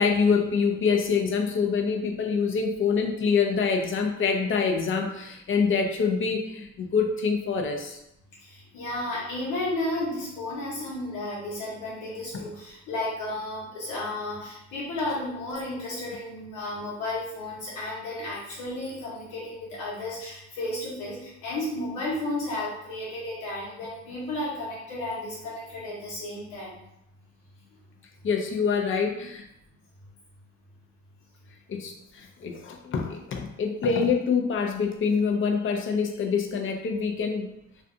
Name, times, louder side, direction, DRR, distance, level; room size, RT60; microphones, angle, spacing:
voice 1, 0.0-8.0 12.3-12.5 28.2-29.5 31.7-37.5, left 5 dB, 45° left, 2 dB, 0.5 m, -25 dB
voice 2, 8.4-26.8, left 1 dB, 90° left, -7 dB, 1.0 m, -33 dB
2.5 x 2.3 x 2.6 m, 0.82 s
cardioid pair, 90°, 30 cm